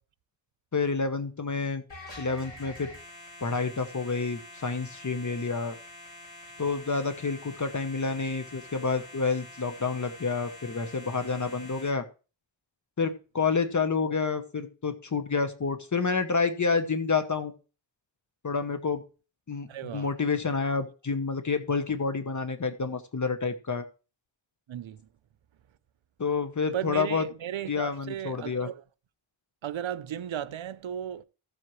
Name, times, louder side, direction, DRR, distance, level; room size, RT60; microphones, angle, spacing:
voice 1, 0.7-1.8 2.2-2.9 3.4-5.8 6.6-12.0 13.0-17.5 18.4-19.0 19.5-23.8 26.2-27.3 27.7-28.7, left 4 dB, 40° left, 0.9 m, -29 dB
sound 1, 1.9-11.9, left 1 dB, 70° left, 4.4 m, -47 dB
voice 2, 19.7-20.1 24.7-25.1 26.7-28.8 29.6-31.2, right 10 dB, 80° right, 0.6 m, -35 dB
14.5 x 7.6 x 3.1 m
wide cardioid pair, 105°, 46 cm